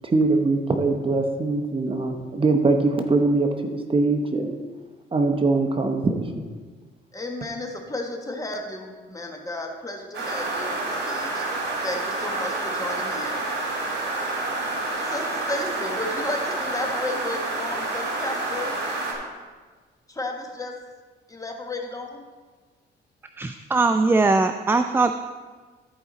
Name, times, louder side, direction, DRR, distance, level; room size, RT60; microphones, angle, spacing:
voice 1, 0.0-4.6 5.1-6.4, right 3 dB, 25° right, 4 dB, 0.9 m, -22 dB
voice 2, 7.1-11.4 11.8-13.7 15.0-18.7 20.1-20.7 21.3-22.2, left 2 dB, 15° left, 2 dB, 1.4 m, -33 dB
sound 1, 10.1-19.1, right 2 dB, 65° right, 2.8 m, -28 dB
voice 3, 23.4-25.1, right 3 dB, 10° right, 8 dB, 0.3 m, -20 dB
13.5 x 4.9 x 4.0 m, 1.4 s
cardioid pair, 90°, 20 cm